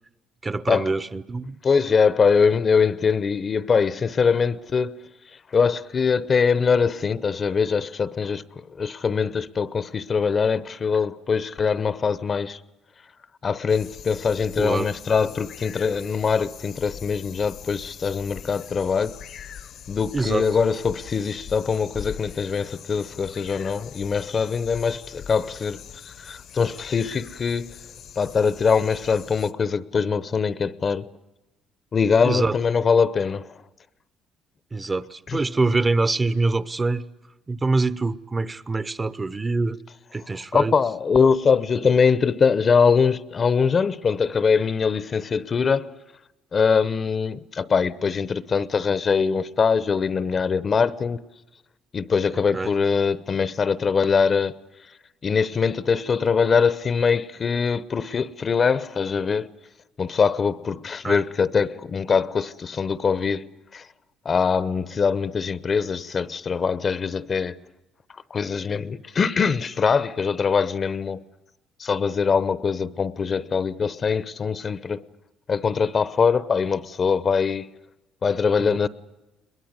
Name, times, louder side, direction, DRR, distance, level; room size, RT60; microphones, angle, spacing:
voice 1, 0.4-1.6 14.6-14.9 20.1-20.4 32.2-32.6 34.7-37.1 37.5-39.8 40.1-40.7 52.5-52.7 61.0-61.2 78.6-78.8, right 3 dB, 25° right, 0.8 m, -24 dB
voice 2, 1.6-5.0 5.5-12.6 13.4-19.2 19.9-27.8 28.2-31.1 31.9-33.6 35.3-35.4 40.5-45.9 46.5-51.2 51.9-54.6 55.2-59.5 60.0-63.9 64.2-67.6 68.3-71.2 71.8-75.0 75.5-77.7 78.2-78.9, left 5 dB, 40° left, 0.8 m, -22 dB
sound 1, 13.7-29.5, left 9 dB, 65° left, 1.0 m, -42 dB
22.0 x 21.0 x 9.6 m
supercardioid pair, 85°, 0 cm